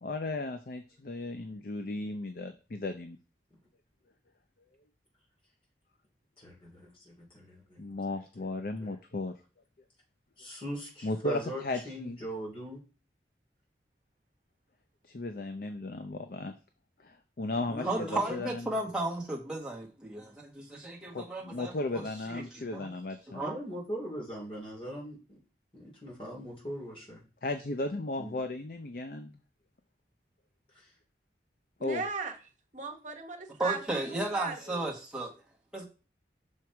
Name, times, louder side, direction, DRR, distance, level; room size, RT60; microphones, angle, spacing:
voice 1, 0.0-3.2 7.8-9.4 11.0-12.2 15.0-16.5 17.0-18.6 21.1-23.4 27.4-29.3 31.8-32.0, left 2 dB, 55° left, 7 dB, 0.5 m, -35 dB
voice 2, 6.4-7.8 8.8-8.9 10.4-12.8 17.7-18.5 23.3-25.4 25.7-27.2 28.2-28.3 30.7-30.9, equal, 30° left, -3 dB, 2.9 m, -40 dB
voice 3, 17.8-22.9 23.4-23.6 33.6-35.3 35.7-35.9, right 2 dB, 5° right, -3 dB, 1.4 m, -34 dB
voice 4, 31.8-32.3 32.7-34.9, right 4 dB, 45° right, 2 dB, 1.2 m, -38 dB
6.1 x 4.6 x 4.7 m, 0.35 s
head